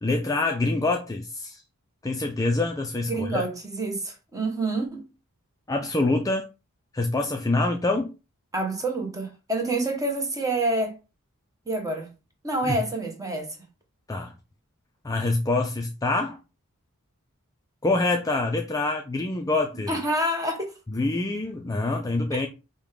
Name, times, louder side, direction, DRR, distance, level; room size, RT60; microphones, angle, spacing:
voice 1, 0.0-1.6 2.0-3.4 5.7-6.5 6.9-8.1 12.7-12.8 14.1-14.3 15.0-16.4 17.8-20.0 20.9-22.5, left 2 dB, 15° left, 0.3 m, -25 dB
voice 2, 3.1-5.1 8.5-11.0 11.7-12.1 12.4-13.6 19.9-20.7 22.3-22.4, right 2 dB, 15° right, 0.9 m, -27 dB
5.0 x 2.1 x 3.6 m
head